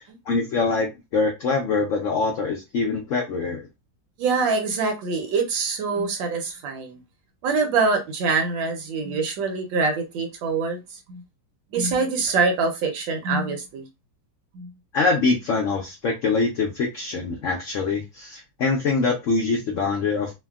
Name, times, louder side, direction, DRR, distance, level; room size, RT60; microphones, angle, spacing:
voice 1, 0.3-3.7 14.9-20.3, left 4 dB, 80° left, 0.7 m, -24 dB
voice 2, 4.2-7.0 7.4-11.2 11.7-13.8 14.5-14.7, right 4 dB, 85° right, 1.5 m, -24 dB
3.3 x 2.1 x 2.3 m
omnidirectional pair, 2.0 m